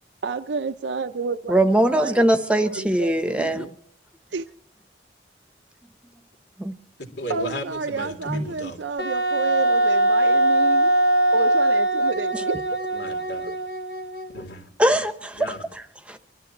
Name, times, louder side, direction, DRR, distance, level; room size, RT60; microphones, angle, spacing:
voice 1, 0.2-3.7 4.3-4.5 7.3-10.9 11.3-12.6, right 4 dB, 85° right, 0.6 m, -30 dB
voice 2, 1.5-3.8 6.6-6.7 8.3-8.4 12.3-12.4 14.8-15.5 15.7-16.2, right 1 dB, 5° right, 1.0 m, -21 dB
voice 3, 7.0-8.8 12.9-13.5 14.3-15.0 15.3-15.6, equal, 85° left, 3.4 m, -35 dB
Wind instrument woodwind instrument, 9.0-14.5, right 1 dB, 60° left, 1.0 m, -21 dB
24.5 x 13.5 x 3.1 m
head